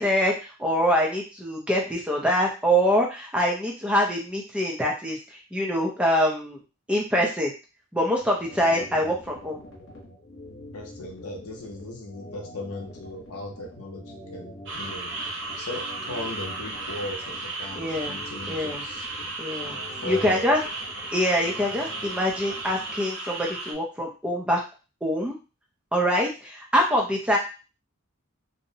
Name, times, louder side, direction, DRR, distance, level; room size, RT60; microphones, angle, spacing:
voice 1, 0.0-5.2 5.5-6.6 6.9-7.5 7.9-9.6 17.8-18.2 18.5-18.8 19.4-19.8 20.0-20.6 21.1-24.6 25.0-25.4 25.9-27.4, equal, 5° right, -1 dB, 0.4 m, -24 dB
sound 1, 8.2-22.9, left 1 dB, 55° left, 0.9 m, -45 dB
voice 2, 10.7-15.1 15.6-19.3 19.9-20.5, left 1 dB, 85° left, 1 dB, 0.7 m, -38 dB
sound 2, 14.7-23.7, right 2 dB, 55° right, 0.8 m, -35 dB
2.7 x 2.1 x 2.7 m, 0.31 s
head